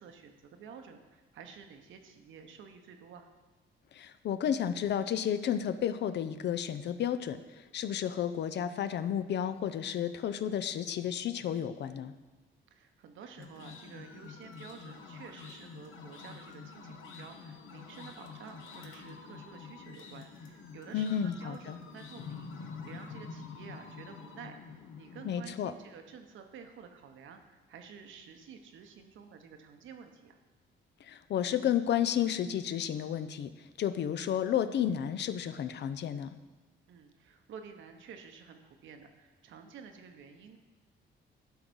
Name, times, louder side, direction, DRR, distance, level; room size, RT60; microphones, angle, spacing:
voice 1, 0.0-3.3 12.7-30.4 36.9-40.6, right 6 dB, 75° right, 6 dB, 1.0 m, -51 dB
voice 2, 3.9-7.4 7.7-12.1 20.9-21.8 25.3-25.7 31.1-33.5 33.8-36.3, left 9 dB, 60° left, 12 dB, 0.5 m, -32 dB
sound 1, 13.4-25.4, left 5 dB, 85° left, 1.0 m, -47 dB
11.5 x 4.0 x 6.2 m, 1.2 s
cardioid pair, 90°, 20 cm